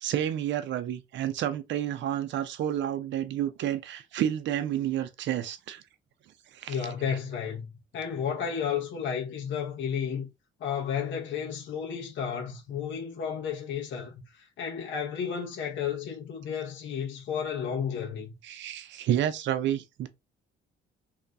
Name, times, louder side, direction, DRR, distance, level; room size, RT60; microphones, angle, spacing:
voice 1, 0.0-5.8 6.5-6.8 18.4-20.1, right 11 dB, 65° right, 0.5 m, -30 dB
voice 2, 6.7-10.3 10.6-18.3, left 7 dB, 70° left, 0.9 m, -32 dB
2.8 x 2.6 x 3.4 m
cardioid pair, 90°, 20 cm